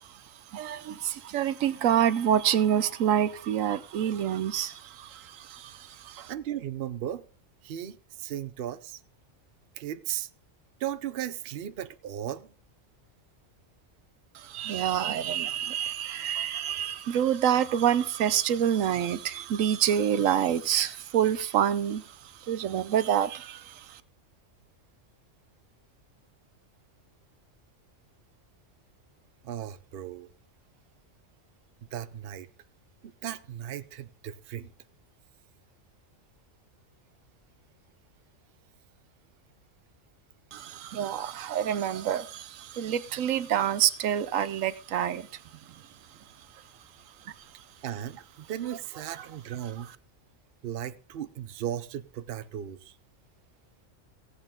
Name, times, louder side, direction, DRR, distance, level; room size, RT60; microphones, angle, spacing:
voice 1, 0.0-6.3 14.3-24.0 40.5-45.8 47.2-47.3, right 9 dB, 80° right, 1.1 m, -27 dB
voice 2, 6.3-7.2 7.6-9.0 9.8-10.3 10.8-12.5 29.4-30.3 31.9-32.5 33.2-34.7 47.8-49.9 50.6-53.0, right 11 dB, 55° right, 0.8 m, -36 dB
16.5 x 8.1 x 3.7 m
omnidirectional pair, 1.3 m